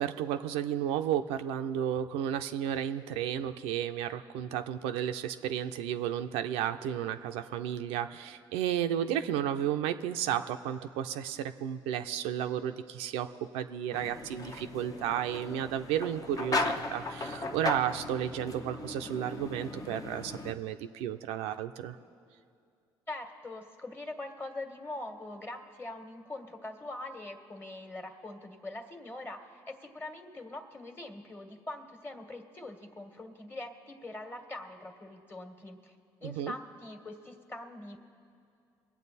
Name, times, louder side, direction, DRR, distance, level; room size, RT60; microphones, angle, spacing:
voice 1, 0.0-13.3 13.5-22.0 36.2-36.5, right 10 dB, 85° right, 7 dB, 0.5 m, -33 dB
sound 1, 13.9-20.5, left 2 dB, 35° left, 0.9 m, -37 dB
voice 2, 23.1-38.0, left 2 dB, 20° left, 6 dB, 1.5 m, -43 dB
22.5 x 8.4 x 4.1 m, 2.4 s
supercardioid pair, 70°, 10 cm